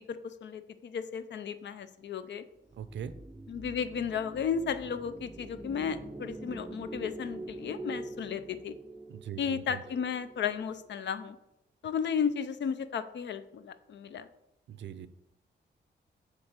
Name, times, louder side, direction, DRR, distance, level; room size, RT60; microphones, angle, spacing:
voice 1, 0.0-2.4 3.5-8.8 9.4-11.4 11.8-14.3, left 7 dB, 75° left, 12 dB, 0.6 m, -34 dB
sound 1, 2.7-11.0, right 2 dB, 10° right, 0.4 m, -45 dB
voice 2, 2.7-3.1 9.1-9.8 14.7-15.1, right 9 dB, 80° right, 13 dB, 0.6 m, -41 dB
7.6 x 3.6 x 6.4 m, 0.85 s
wide cardioid pair, 135°, 19 cm